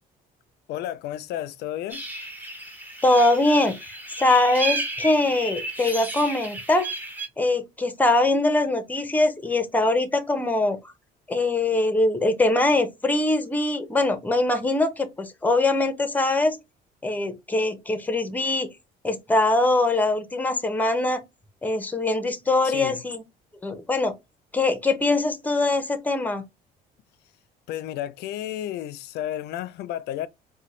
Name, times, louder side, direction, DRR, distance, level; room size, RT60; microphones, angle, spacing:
voice 1, 0.7-2.0 22.6-23.0 27.7-30.3, left 12 dB, 75° left, 0.4 m, -32 dB
sound 1, 1.9-7.3, right 2 dB, 10° right, 1.0 m, -33 dB
voice 2, 3.0-6.9 7.4-10.8 11.3-16.6 17.0-18.7 19.0-21.2 21.6-23.2 23.6-24.1 24.5-26.4, left 2 dB, 10° left, 0.7 m, -22 dB
4.2 x 2.2 x 3.1 m
cardioid pair, 110°, 17 cm